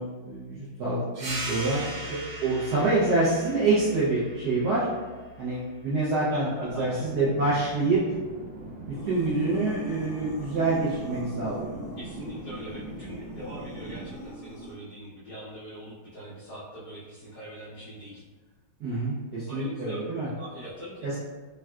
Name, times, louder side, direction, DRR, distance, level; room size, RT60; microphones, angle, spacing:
voice 1, 0.0-4.9 5.4-8.0 8.8-11.8 18.8-20.3 21.0-21.2, right 2 dB, 70° right, -9 dB, 0.9 m, -27 dB
sound 1, 1.1-6.3, right 1 dB, 55° right, 1.3 m, -39 dB
voice 2, 6.3-7.1 12.0-18.2 19.5-21.2, equal, 70° left, -10 dB, 0.9 m, -42 dB
sound 2, 6.6-14.1, right 2 dB, 85° right, 1.5 m, -41 dB
sound 3, 8.9-14.7, equal, 50° left, 1.2 m, -41 dB
3.7 x 2.2 x 2.2 m, 1.3 s
omnidirectional pair, 2.3 m